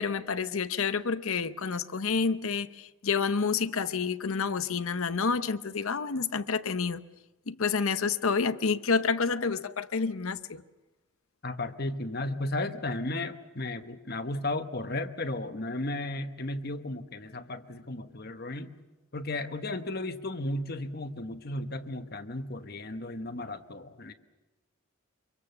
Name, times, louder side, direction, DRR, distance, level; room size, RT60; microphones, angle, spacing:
voice 1, 0.0-7.0 7.5-10.6, left 5 dB, 75° left, 0.8 m, -29 dB
voice 2, 11.4-18.7 19.1-24.1, left 2 dB, 45° left, 1.1 m, -34 dB
25.5 x 23.5 x 6.9 m
head